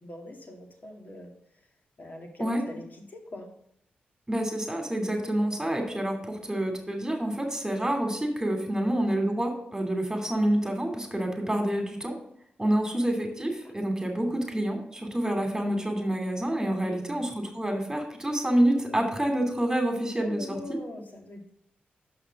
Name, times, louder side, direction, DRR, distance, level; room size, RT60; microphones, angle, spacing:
voice 1, 0.0-1.3 2.0-3.5 16.6-17.0 20.2-21.5, left 2 dB, 50° left, 2 dB, 2.2 m, -42 dB
voice 2, 4.3-12.2 12.6-20.8, right 1 dB, 15° right, 3 dB, 2.7 m, -28 dB
6.7 x 5.8 x 6.0 m, 0.74 s
cardioid pair, 50°, 4 cm